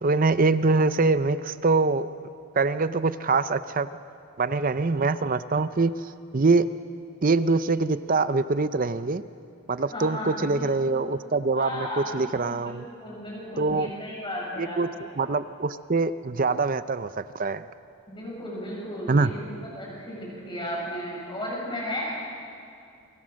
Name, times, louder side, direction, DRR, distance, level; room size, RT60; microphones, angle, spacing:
voice 1, 0.0-2.1 2.6-3.9 4.4-6.7 7.2-9.2 9.7-12.8 13.6-13.9 14.6-14.9 15.2-17.7 19.1-19.3, right 3 dB, 40° right, 13 dB, 0.6 m, -24 dB
voice 2, 9.9-10.7 11.5-14.8 18.1-22.0, equal, 20° left, -4 dB, 7.8 m, -35 dB
28.0 x 25.0 x 6.4 m, 2.5 s
head